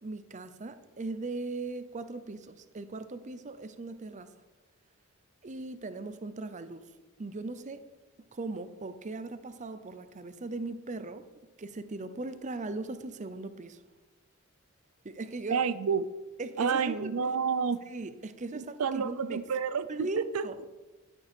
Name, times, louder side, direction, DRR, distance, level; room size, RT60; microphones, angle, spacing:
voice 1, 0.0-4.3 5.4-6.8 7.2-7.9 8.2-11.3 11.6-13.8 15.0-15.7 16.4-17.1 17.9-19.4 19.9-20.7, right 3 dB, 35° right, 11 dB, 0.6 m, -39 dB
voice 2, 15.5-16.0 16.6-17.8 18.5-20.5, right 6 dB, 80° right, 14 dB, 0.5 m, -29 dB
11.5 x 9.1 x 4.5 m, 1.2 s
head